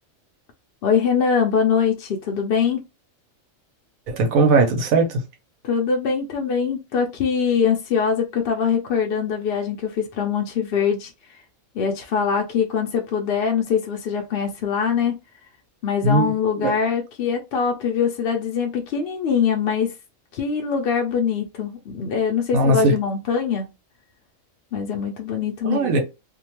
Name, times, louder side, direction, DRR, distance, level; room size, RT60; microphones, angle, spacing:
voice 1, 0.8-2.8 5.6-11.1 11.7-15.2 15.8-19.9 20.3-23.7 24.7-26.0, left 6 dB, 65° left, 0.6 m, -23 dB
voice 2, 4.1-5.2 16.0-16.3 16.6-16.7 22.5-22.9 25.6-26.0, right 2 dB, 80° right, 1.2 m, -18 dB
2.7 x 2.2 x 2.9 m
omnidirectional pair, 1.4 m